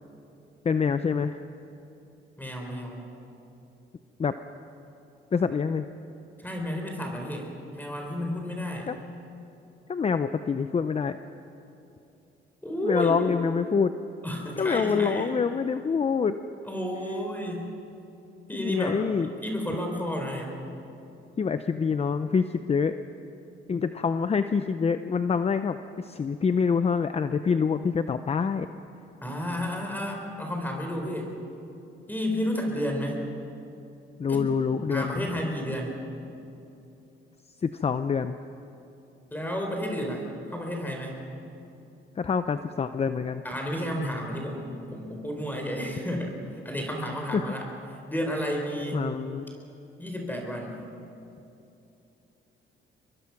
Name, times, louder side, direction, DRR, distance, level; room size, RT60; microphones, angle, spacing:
voice 1, 0.6-1.4 4.2-4.3 5.3-5.9 8.9-9.0 9.9-11.2 12.8-13.9 14.6-16.4 18.5-19.3 21.4-23.0 23.7-28.7 34.2-35.3 37.6-38.3 42.2-43.4 47.3-47.4 48.9-49.5, left 5 dB, 30° left, 10 dB, 0.7 m, -26 dB
voice 2, 2.4-3.0 6.4-7.5 7.7-8.9 12.6-13.3 14.2-15.3 16.6-17.6 18.5-19.0 19.4-20.5 29.2-31.3 32.1-33.2 34.3-34.5 34.9-35.9 39.3-41.2 43.4-46.4 46.6-47.6 48.1-49.1 50.0-50.8, equal, 10° left, 1 dB, 4.3 m, -31 dB
24.0 x 22.5 x 6.0 m, 2.8 s
cardioid pair, 90°, 20 cm